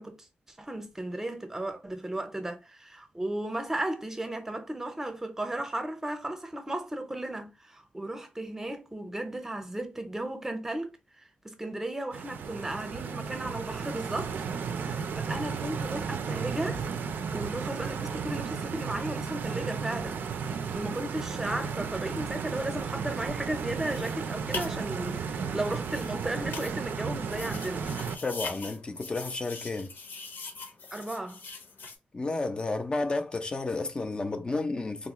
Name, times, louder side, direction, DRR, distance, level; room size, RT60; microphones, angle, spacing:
voice 1, 0.0-10.9 11.4-14.4 14.8-16.8 17.3-20.2 20.7-27.8 30.9-31.4, right 1 dB, 15° right, 0.6 m, -35 dB
Stream, 12.1-28.2, right 6 dB, 85° right, 0.4 m, -34 dB
sound 1, 23.6-32.0, left 4 dB, 85° left, 0.8 m, -42 dB
voice 2, 28.2-29.9 32.1-35.1, left 3 dB, 30° left, 0.5 m, -31 dB
3.8 x 2.3 x 2.9 m
wide cardioid pair, 150°, 3 cm